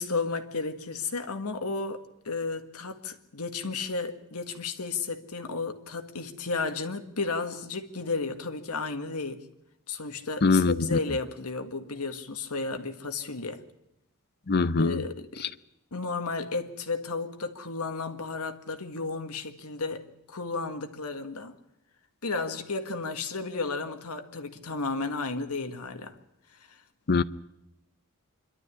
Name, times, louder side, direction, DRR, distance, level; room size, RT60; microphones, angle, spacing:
voice 1, 0.0-9.5 9.9-13.6 14.8-15.5 15.9-21.5 22.2-26.2 26.6-26.8, left 4 dB, 85° left, 1.8 m, -33 dB
voice 2, 10.4-11.0 14.5-15.0 27.1-27.2, left 3 dB, 45° left, 0.7 m, -23 dB
26.5 x 12.5 x 9.8 m
head